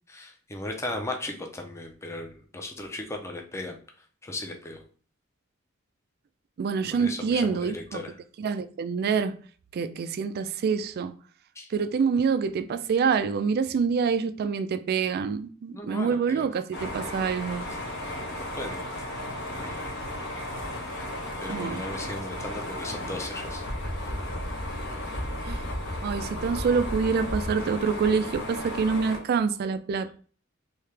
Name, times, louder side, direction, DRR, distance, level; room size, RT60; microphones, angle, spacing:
voice 1, 0.1-3.8 4.2-4.8 7.0-8.1 11.6-11.7 15.7-16.5 18.1-18.8 19.5-19.8 21.4-23.6, left 2 dB, 15° left, 0.5 m, -36 dB
voice 2, 6.6-8.0 8.4-9.4 9.7-11.1 11.7-17.7 21.5-21.8 25.5-25.6 26.0-30.1, right 5 dB, 50° right, 0.3 m, -26 dB
sound 1, 16.7-29.2, left 1 dB, 60° left, 0.9 m, -34 dB
3.3 x 2.8 x 3.2 m
head